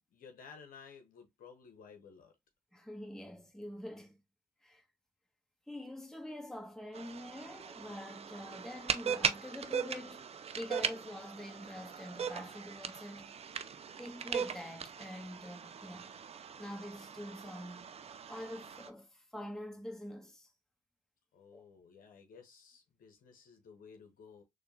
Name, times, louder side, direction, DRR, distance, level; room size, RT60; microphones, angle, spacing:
voice 1, 0.1-2.4 21.3-24.4, left 6 dB, 50° left, 1.2 m, -55 dB
voice 2, 2.7-4.2 4.6-4.8 5.7-10.3 10.6-13.3 14.0-16.2 16.6-17.9 18.3-20.5 21.5-21.6, left 1 dB, ahead, 1.7 m, -45 dB
sound 1, 6.9-18.9, right 7 dB, 35° right, 0.6 m, -39 dB
6.8 x 2.6 x 2.8 m
figure-of-eight pair, 40°, 18 cm